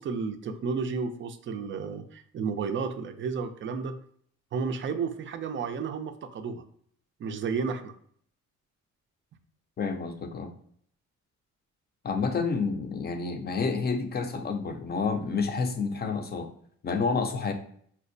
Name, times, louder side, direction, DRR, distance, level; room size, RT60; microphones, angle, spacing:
voice 1, 0.0-4.0 4.5-6.6 7.2-7.9, right 5 dB, 40° right, 9 dB, 0.4 m, -32 dB
voice 2, 9.8-10.5 12.0-16.5 16.8-17.5, left 4 dB, 35° left, 6 dB, 0.5 m, -29 dB
4.4 x 2.1 x 2.5 m, 0.63 s
cardioid pair, 90°, 30 cm